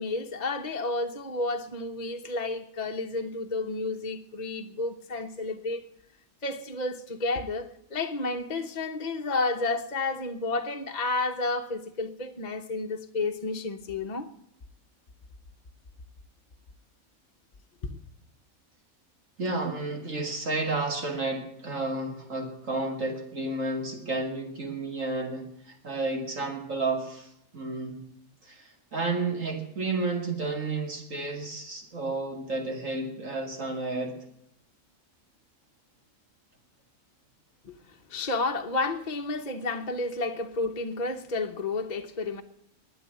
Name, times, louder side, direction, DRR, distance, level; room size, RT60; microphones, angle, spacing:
voice 1, 0.0-5.8 6.4-14.3 17.8-18.0 37.6-37.8 38.1-42.4, left 3 dB, 35° left, 0.9 m, -31 dB
voice 2, 19.4-28.0 28.4-34.2, right 3 dB, 60° right, 2.7 m, -31 dB
12.5 x 9.5 x 9.3 m
omnidirectional pair, 1.5 m